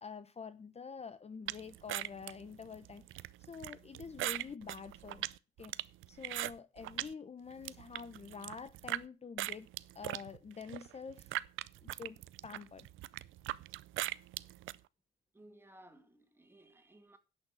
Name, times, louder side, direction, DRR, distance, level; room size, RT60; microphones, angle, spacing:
voice 1, 0.0-5.2 5.6-5.8 6.1-9.7 9.9-11.3 11.8-12.9, left 5 dB, 30° left, 0.9 m, -47 dB
sound 1, 1.5-7.1 7.5-9.0 9.4-14.8, right 16 dB, 85° right, 0.5 m, -40 dB
voice 2, 15.3-17.2, right 1 dB, 10° right, 2.3 m, -59 dB
11.0 x 6.4 x 7.6 m
cardioid pair, 90°, 20 cm